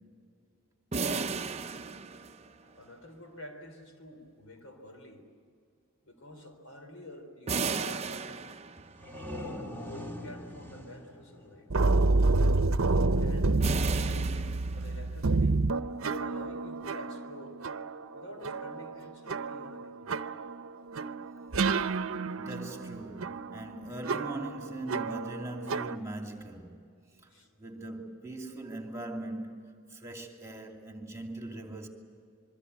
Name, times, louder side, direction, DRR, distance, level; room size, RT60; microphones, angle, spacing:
sound 1, 0.9-2.8 7.5-9.1 13.6-15.3, right 5 dB, 30° right, 0.7 m, -34 dB
voice 1, 2.6-5.3 6.0-8.5 9.5-11.7 13.2-15.6 16.0-17.8 18.1-20.1 27.3-27.5, equal, 75° left, 4.2 m, -48 dB
sound 2, 8.8-12.4, left 1 dB, 10° left, 2.1 m, -43 dB
sound 3, 11.7-26.0, right 3 dB, 75° right, 0.8 m, -29 dB
voice 2, 22.3-26.8 27.6-31.9, right 1 dB, 15° right, 2.6 m, -40 dB
27.0 x 23.0 x 8.2 m
head